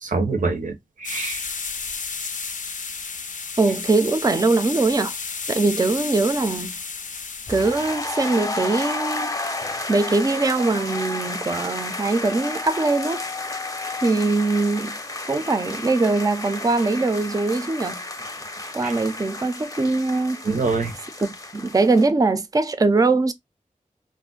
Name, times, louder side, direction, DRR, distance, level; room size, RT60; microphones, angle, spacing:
voice 1, 0.0-1.5 18.8-18.9 20.4-20.9, right 3 dB, 85° right, 0.7 m, -25 dB
sound 1, 1.0-8.3, left 5 dB, 80° left, 0.5 m, -32 dB
voice 2, 3.6-5.1 5.5-6.8 7.5-9.3 9.9-13.2 14.0-15.0 15.3-18.0 18.7-20.4 21.2-23.3, right 3 dB, 25° right, 0.4 m, -21 dB
sound 2, 7.5-22.1, left 2 dB, 25° left, 0.6 m, -32 dB
2.4 x 2.1 x 3.7 m
wide cardioid pair, 45°, 13 cm